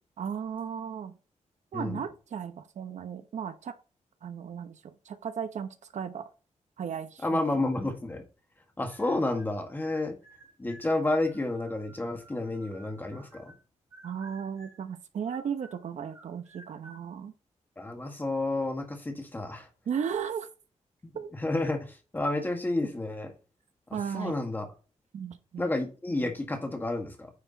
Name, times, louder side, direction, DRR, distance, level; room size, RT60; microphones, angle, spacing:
voice 1, 0.2-1.1 1.7-3.7 4.2-4.8 5.0-6.3 6.8-7.4 14.0-17.3 19.9-20.5 21.1-21.3 23.9-24.4 25.1-25.7, right 7 dB, 70° right, 1.1 m, -35 dB
voice 2, 7.2-8.2 8.8-10.2 10.6-13.5 17.8-19.7 21.3-23.3 23.9-24.7 25.6-27.3, left 2 dB, 15° left, 1.8 m, -30 dB
sound 1, 8.9-9.5 9.8-13.6 13.9-14.9 15.2-17.0, right 2 dB, 25° right, 2.2 m, -55 dB
9.5 x 4.8 x 4.1 m
wide cardioid pair, 175°, 12 cm